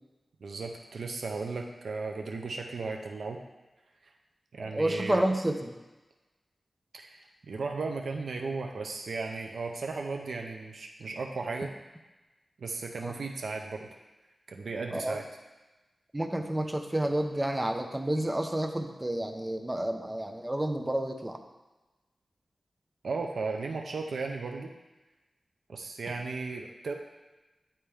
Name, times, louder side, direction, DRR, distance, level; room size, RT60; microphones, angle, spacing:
voice 1, 0.4-3.4 4.5-5.2 6.9-11.7 12.6-13.9 14.5-15.2 23.0-24.7 25.7-26.9, right 4 dB, 80° right, 2 dB, 0.5 m, -35 dB
voice 2, 4.6-5.7 13.0-13.1 14.9-15.2 16.1-21.4, right 1 dB, 15° right, 4 dB, 0.6 m, -30 dB
8.7 x 4.3 x 3.5 m, 1.1 s
wide cardioid pair, 115°, 0 cm